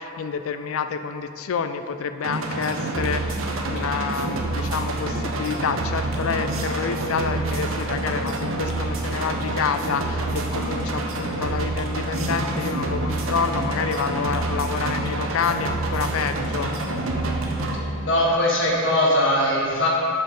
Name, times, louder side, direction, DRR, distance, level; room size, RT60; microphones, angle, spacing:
voice 1, 0.0-16.7, left 6 dB, 80° left, 10 dB, 0.4 m, -28 dB
sound 1, 2.2-17.8, right 2 dB, 75° right, 0.7 m, -27 dB
voice 2, 18.0-19.9, left 1 dB, 60° left, -4 dB, 1.4 m, -20 dB
7.7 x 4.5 x 5.1 m, 2.7 s
head